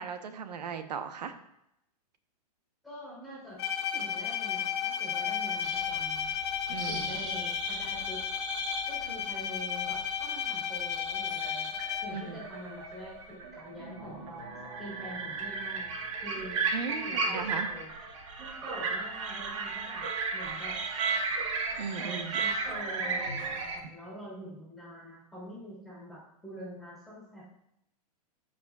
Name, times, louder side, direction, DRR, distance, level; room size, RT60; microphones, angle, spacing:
voice 1, 0.0-1.4 6.7-7.1 12.1-12.4 16.7-17.7 21.8-22.3, right 6 dB, 90° right, 9 dB, 0.9 m, -37 dB
voice 2, 2.8-3.6 3.9-6.3 6.8-8.2 8.9-14.4 14.8-17.9 18.4-20.1 20.3-20.8 22.0-27.4, equal, ahead, -8 dB, 2.7 m, -45 dB
Bowed string instrument, 3.6-12.3, left 8 dB, 40° left, 0.8 m, -33 dB
sound 1, 5.6-23.8, right 4 dB, 50° right, 1.3 m, -35 dB
15.0 x 5.1 x 2.3 m, 0.81 s
supercardioid pair, 165°, 20 cm